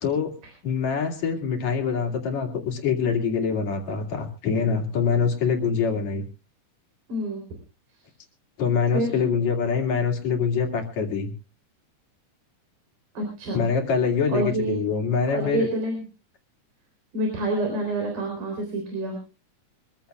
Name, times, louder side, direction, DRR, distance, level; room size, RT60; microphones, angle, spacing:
voice 1, 0.0-0.3 0.6-6.3 8.6-11.3 13.5-15.7, left 6 dB, 60° left, 2 dB, 3.5 m, -24 dB
voice 2, 7.1-7.4 8.9-9.1 13.2-13.6 14.3-14.8 15.3-16.0 17.1-19.2, right 1 dB, 85° right, 2 dB, 5.3 m, -27 dB
25.0 x 15.0 x 2.3 m, 0.33 s
omnidirectional pair, 3.6 m